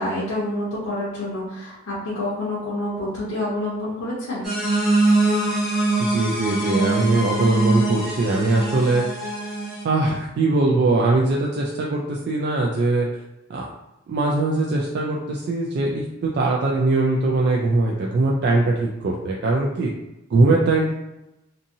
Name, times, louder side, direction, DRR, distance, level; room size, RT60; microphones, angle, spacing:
voice 1, 0.0-4.5, left 1 dB, 85° left, -8 dB, 0.7 m, -28 dB
sound 1, 4.4-9.8, right 2 dB, ahead, 0.8 m, -23 dB
voice 2, 6.0-9.3 9.8-13.1 13.5-13.6 14.1-19.9 20.3-20.9, right 2 dB, 55° right, -2 dB, 0.3 m, -21 dB
2.6 x 2.6 x 2.6 m, 0.95 s
head